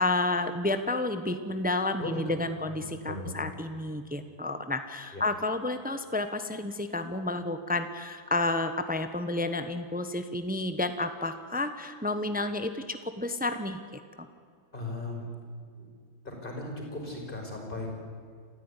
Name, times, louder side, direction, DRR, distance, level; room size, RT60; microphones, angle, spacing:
voice 1, 0.0-14.3, left 2 dB, 10° right, 9 dB, 0.5 m, -31 dB
voice 2, 2.0-3.4 5.1-5.2 14.7-15.3 15.8-15.9 16.2-17.9, left 2 dB, 25° left, 1 dB, 5.4 m, -37 dB
28.0 x 14.0 x 9.9 m, 2.1 s
omnidirectional pair, 2.2 m